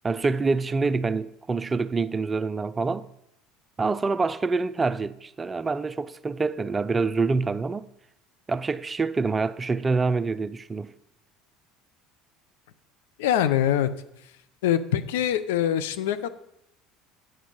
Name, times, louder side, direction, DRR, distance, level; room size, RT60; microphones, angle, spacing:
voice 1, 0.0-3.1 3.8-7.9 8.5-10.9, right 4 dB, 25° right, 0.4 m, -26 dB
voice 2, 13.2-13.9 14.6-16.3, left 11 dB, 75° left, 0.6 m, -23 dB
8.7 x 5.4 x 6.4 m
hypercardioid pair, 75°, 0 cm